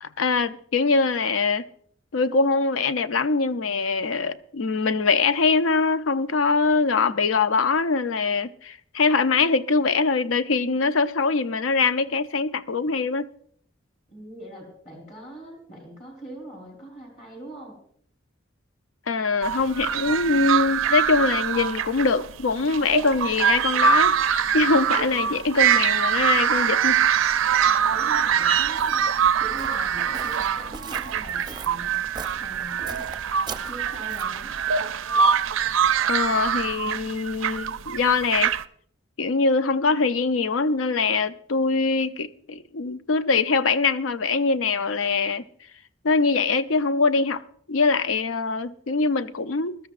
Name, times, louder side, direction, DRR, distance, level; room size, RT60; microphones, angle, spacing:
voice 1, 0.0-1.6 2.1-13.3 19.1-24.1 24.5-27.0 36.1-38.5 39.2-45.4 46.0-47.4 47.7-49.8, left 4 dB, 90° left, 0.6 m, -23 dB
voice 2, 14.1-17.8 27.9-29.0 29.4-32.0 32.4-34.5, right 1 dB, 35° left, 3.8 m, -42 dB
sound 1, 19.4-38.6, right 8 dB, 85° right, 0.4 m, -23 dB
Walk footsteps, 28.2-34.5, right 4 dB, 20° right, 0.5 m, -41 dB
21.5 x 13.0 x 2.5 m
head